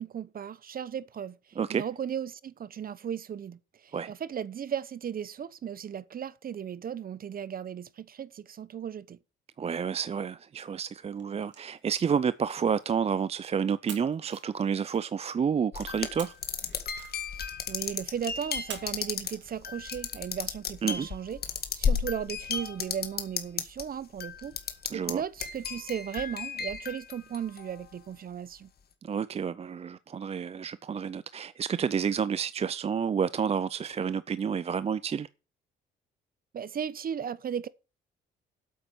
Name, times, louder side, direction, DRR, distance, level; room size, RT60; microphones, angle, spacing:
voice 1, 0.0-9.2 17.3-17.4 17.7-21.4 21.8-24.6 24.9-28.7 36.5-37.7, right 8 dB, 45° right, 0.8 m, -36 dB
voice 2, 9.6-16.3 20.8-21.1 24.9-25.2 29.0-35.3, right 7 dB, 30° right, 0.4 m, -30 dB
sound 1, 11.1-13.4 13.9-15.4 16.2-17.6 18.7-20.0, right 6 dB, 65° right, 2.9 m, -48 dB
sound 2, 15.7-23.8 24.2-25.1 25.4-27.8, left 6 dB, 50° left, 1.8 m, -33 dB
8.6 x 7.9 x 7.2 m
cardioid pair, 90°, 20 cm